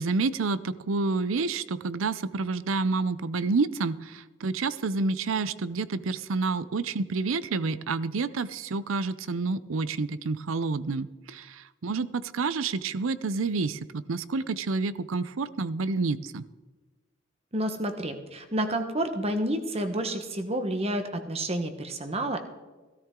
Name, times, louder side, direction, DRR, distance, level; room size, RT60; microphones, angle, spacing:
voice 1, 0.0-16.5, right 3 dB, 90° right, 16 dB, 0.6 m, -29 dB
voice 2, 17.5-22.4, right 1 dB, 30° right, 7 dB, 1.2 m, -29 dB
16.5 x 13.5 x 3.7 m, 1.3 s
head